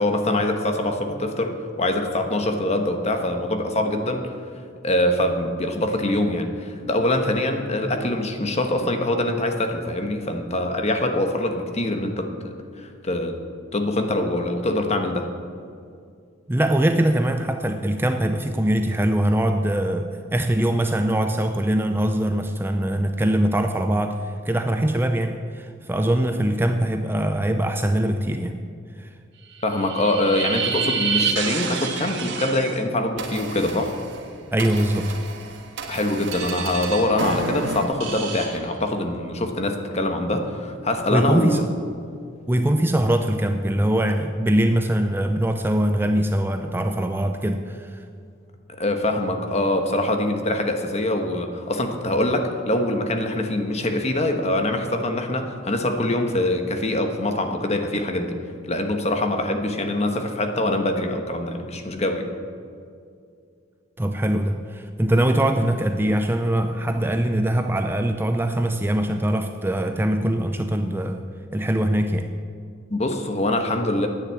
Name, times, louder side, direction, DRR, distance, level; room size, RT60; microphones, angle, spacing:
voice 1, 0.0-4.3 4.8-13.4 13.7-15.3 29.6-33.9 35.9-41.7 48.8-58.4 58.7-62.3 72.9-74.1, left 1 dB, 35° left, 5 dB, 1.2 m, -24 dB
voice 2, 16.5-28.6 29.0-29.1 34.5-35.2 41.1-41.8 42.5-48.0 64.0-71.2 71.5-72.4, right 1 dB, 10° right, 6 dB, 0.5 m, -22 dB
sound 1, 29.6-32.8 33.2-37.9, right 5 dB, 65° right, 1.5 m, -29 dB
sound 2, 36.3-39.3, right 5 dB, 85° right, 2.5 m, -36 dB
10.5 x 9.3 x 8.3 m, 2.3 s
head